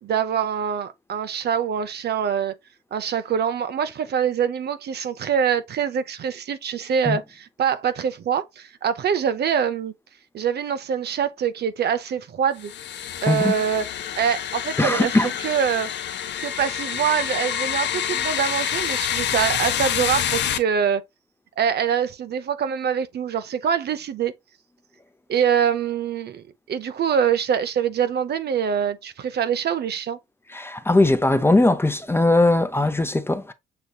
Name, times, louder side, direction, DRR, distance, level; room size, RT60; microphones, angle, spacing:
voice 1, 0.0-2.5 2.9-9.9 10.3-12.7 13.2-13.9 14.2-15.1 15.4-15.9 16.4-21.0 21.6-24.3 25.3-30.2, right 8 dB, 55° right, 0.7 m, -24 dB
sound 1, 12.6-20.6, left 9 dB, 65° left, 0.7 m, -27 dB
voice 2, 14.8-15.3 30.5-33.5, left 2 dB, 10° left, 0.6 m, -19 dB
6.8 x 3.0 x 2.3 m
cardioid pair, 90°, 20 cm